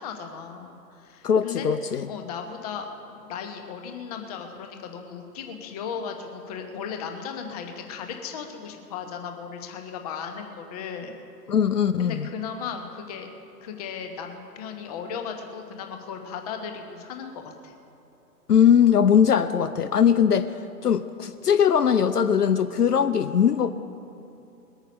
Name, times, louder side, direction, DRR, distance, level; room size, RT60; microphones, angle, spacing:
voice 1, 0.0-1.7 2.1-11.2 12.0-13.3 13.6-17.7, left 6 dB, 25° left, 5 dB, 1.0 m, -36 dB
voice 2, 1.2-2.1 11.5-12.3 18.5-20.5 20.8-23.7, left 8 dB, 65° left, 11 dB, 0.6 m, -20 dB
21.0 x 9.0 x 5.4 m, 2.8 s
figure-of-eight pair, 125°, 50 cm